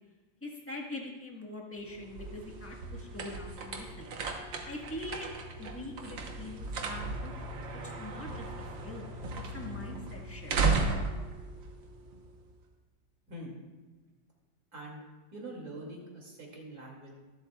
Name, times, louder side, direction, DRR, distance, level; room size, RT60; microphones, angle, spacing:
voice 1, 0.4-4.1 4.6-5.3 5.6-7.3 7.8-8.5 8.8-9.1 9.5-10.5, left 1 dB, 10° left, -1 dB, 1.2 m, -43 dB
sound 1, 1.8-12.5, right 3 dB, 90° right, 1.8 m, -35 dB
voice 2, 14.7-15.0 15.3-17.1, right 1 dB, 50° right, -2 dB, 3.0 m, -44 dB
24.0 x 7.9 x 2.3 m, 1.2 s
omnidirectional pair, 2.0 m